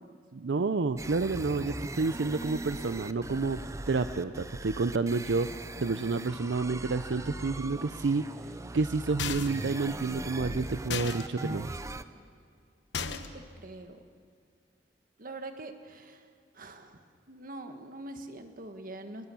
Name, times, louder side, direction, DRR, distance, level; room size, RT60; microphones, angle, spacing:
voice 1, 0.3-11.7, right 3 dB, 75° right, 11 dB, 0.6 m, -30 dB
sound 1, 1.0-12.0, right 2 dB, 20° right, 0.6 m, -40 dB
sound 2, 9.2-9.7 10.9-11.2 12.9-13.4, left 6 dB, 80° left, 1.1 m, -34 dB
voice 2, 13.1-14.0 15.2-16.3 16.5-19.3, right 2 dB, 50° right, 7 dB, 1.5 m, -44 dB
24.5 x 20.0 x 7.0 m, 2.2 s
head